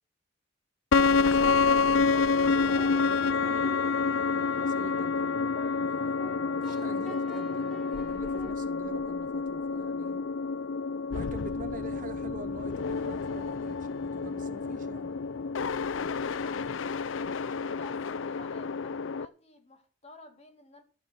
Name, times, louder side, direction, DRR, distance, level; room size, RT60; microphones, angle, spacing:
sound 1, 0.9-19.3, left 4 dB, 70° left, 0.5 m, -28 dB
voice 1, 0.9-3.7 4.3-5.4 5.8-10.2 11.1-15.1, right 2 dB, 40° right, 1.0 m, -45 dB
sound 2, 1.1-8.5, left 1 dB, ahead, 2.2 m, -47 dB
voice 2, 16.3-16.7 17.4-20.8, left 2 dB, 30° left, 2.3 m, -51 dB
13.5 x 8.1 x 5.7 m
head